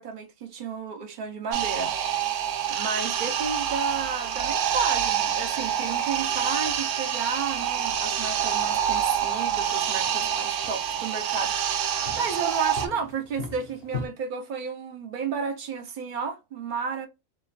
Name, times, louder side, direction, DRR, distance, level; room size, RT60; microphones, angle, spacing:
voice 1, 0.0-1.9 2.7-17.1, right 5 dB, 60° right, 0.5 m, -32 dB
sound 1, 1.5-12.9, right 9 dB, 80° right, 0.9 m, -27 dB
sound 2, 5.1-14.1, left 4 dB, 60° left, 0.8 m, -44 dB
3.2 x 2.1 x 2.3 m
omnidirectional pair, 1.3 m